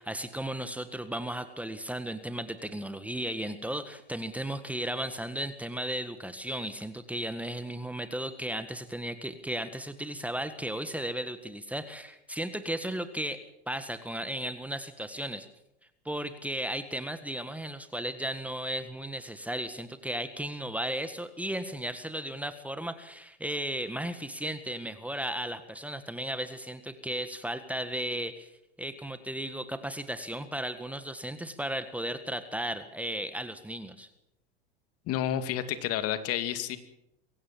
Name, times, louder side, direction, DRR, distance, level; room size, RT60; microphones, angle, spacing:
voice 1, 0.0-15.5 16.0-28.5 28.8-34.1, right 1 dB, 5° right, 10 dB, 1.7 m, -35 dB
voice 2, 35.1-36.8, left 11 dB, 45° left, 10 dB, 2.3 m, -30 dB
24.0 x 16.0 x 7.4 m, 0.83 s
hypercardioid pair, 90°, 32 cm